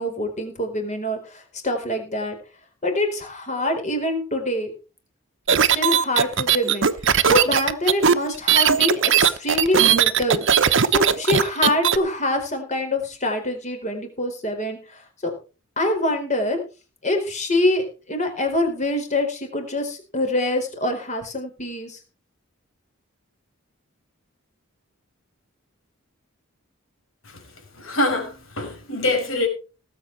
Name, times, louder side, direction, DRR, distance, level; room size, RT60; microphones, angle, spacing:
voice 1, 0.0-2.4 2.8-4.7 5.6-6.9 7.2-10.4 10.9-15.3 15.8-16.6 17.0-22.0, left 1 dB, 35° left, 4.4 m, -25 dB
sound 1, 5.5-12.0, right 8 dB, 60° right, 1.0 m, -18 dB
voice 2, 27.7-29.5, left 2 dB, 70° left, 5.6 m, -25 dB
18.5 x 8.2 x 4.7 m
head